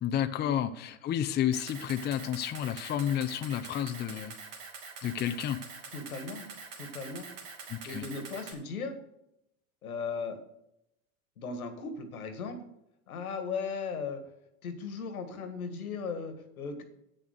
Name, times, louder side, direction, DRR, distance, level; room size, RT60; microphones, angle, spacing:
voice 1, 0.0-4.3 5.0-5.6 7.7-8.0, left 10 dB, 25° left, 8 dB, 0.6 m, -31 dB
Camera, 1.5-8.5, right 4 dB, 55° right, 3.0 m, -45 dB
voice 2, 5.9-6.4 6.8-7.3 7.9-8.9 9.8-10.4 11.4-12.6 13.1-14.2 14.6-16.8, left 5 dB, 85° left, 8 dB, 1.8 m, -37 dB
8.7 x 7.0 x 6.5 m, 0.81 s
hypercardioid pair, 95°, 42 cm